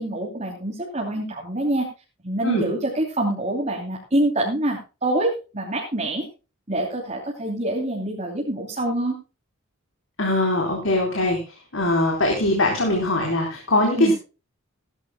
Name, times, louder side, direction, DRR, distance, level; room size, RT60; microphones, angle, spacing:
voice 1, 0.0-1.9 2.2-6.3 6.7-9.2 13.9-14.1, right 1 dB, 30° right, -2 dB, 3.0 m, -25 dB
voice 2, 10.2-11.4 11.7-14.1, left 1 dB, 65° left, 1 dB, 4.0 m, -21 dB
17.5 x 13.5 x 2.2 m, 0.32 s
head